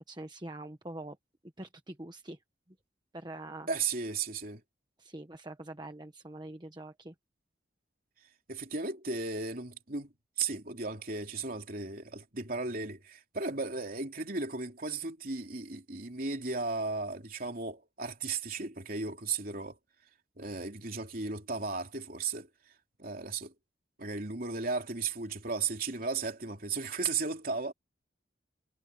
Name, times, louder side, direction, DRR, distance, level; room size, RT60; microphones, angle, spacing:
voice 1, 0.1-1.2 1.6-2.4 3.1-3.7 5.0-7.1, right 1 dB, 25° right, 1.2 m, -44 dB
voice 2, 3.7-4.6 8.5-19.8 20.4-22.5 23.0-23.5 24.0-27.7, right 4 dB, 50° right, 3.2 m, -35 dB
head